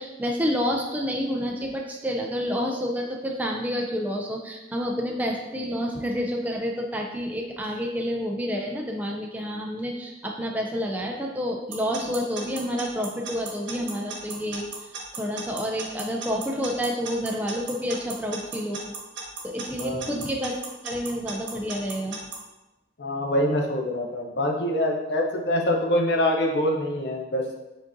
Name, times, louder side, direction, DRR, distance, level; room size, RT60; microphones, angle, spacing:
voice 1, 0.0-14.6 15.1-18.8 19.4-20.6 20.8-22.2, equal, 10° right, 0 dB, 0.4 m, -29 dB
Alarm / Clock, 11.7-22.4, right 5 dB, 80° right, 1.0 m, -36 dB
voice 2, 19.8-20.1 23.0-27.4, left 1 dB, 60° left, 1 dB, 0.7 m, -25 dB
5.0 x 3.8 x 2.6 m, 1.0 s
head